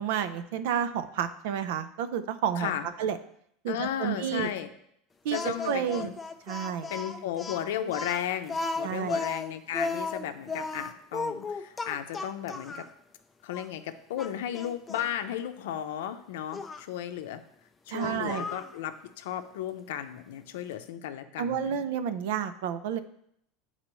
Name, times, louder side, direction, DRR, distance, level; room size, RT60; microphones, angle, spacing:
voice 1, 0.0-2.7 3.0-3.2 3.6-4.5 5.2-6.1 6.5-6.9 8.8-9.2 17.9-18.5 21.4-23.0, right 8 dB, 75° right, 12 dB, 0.5 m, -30 dB
voice 2, 2.6-2.9 3.7-4.7 5.3-6.1 6.9-12.9 13.4-17.4 17.9-21.8, left 10 dB, 90° left, 9 dB, 0.5 m, -34 dB
Speech, 5.3-12.9 13.5-13.7 14.2-15.1 16.5-16.8 18.0-18.7, left 3 dB, 15° left, 0.4 m, -35 dB
8.9 x 4.1 x 3.0 m, 0.71 s
supercardioid pair, 145°, 0 cm